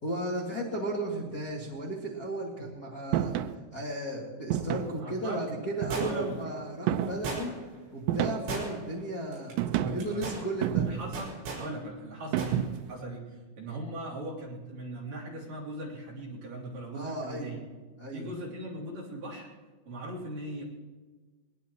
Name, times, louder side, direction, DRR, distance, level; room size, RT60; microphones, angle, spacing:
voice 1, 0.0-3.3 3.7-7.5 7.9-9.6 9.9-10.9 16.9-17.5 18.0-18.3, right 1 dB, 70° left, -6 dB, 0.9 m, -34 dB
sound 1, 3.1-3.6 4.5-5.0 5.8-6.4 6.9-7.3 8.1-8.7 9.6-10.1 10.6-11.2 12.3-12.9, right 10 dB, 90° right, 2.4 m, -30 dB
voice 2, 5.0-5.4 6.0-6.4 9.7-10.3 10.8-17.6 18.1-19.5 19.9-20.6, right 1 dB, 45° right, -5 dB, 4.5 m, -39 dB
sound 2, 5.9-6.4 7.2-7.8 8.5-9.0 9.3-9.5 10.0-10.4 11.1-11.7 12.4-12.6 12.9-13.0, right 3 dB, 70° right, 7.1 m, -36 dB
22.0 x 20.0 x 3.1 m, 1.3 s
omnidirectional pair, 5.7 m